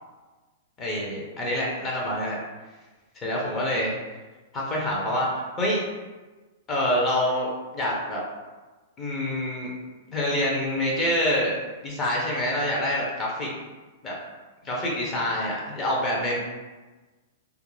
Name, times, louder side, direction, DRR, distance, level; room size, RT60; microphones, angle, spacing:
voice 1, 0.8-2.4 3.2-3.9 4.5-5.8 6.7-8.2 9.0-9.7 10.1-11.6 11.8-13.5 14.0-14.2 14.6-16.4, left 1 dB, 20° left, -3 dB, 0.6 m, -26 dB
2.4 x 2.0 x 3.1 m, 1.2 s
hypercardioid pair, 150°, 0 cm